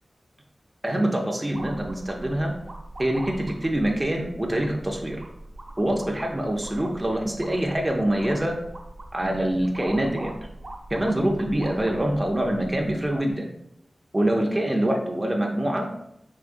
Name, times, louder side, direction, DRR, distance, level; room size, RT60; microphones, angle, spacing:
voice 1, 0.8-2.5 3.0-5.2 5.8-8.6 9.1-10.3 10.9-13.5 14.1-15.9, right 1 dB, 20° right, 0 dB, 0.5 m, -25 dB
sound 1, 1.5-13.3, right 1 dB, 50° right, 0.9 m, -42 dB
4.8 x 3.1 x 2.5 m, 0.79 s
wide cardioid pair, 70°, 0 cm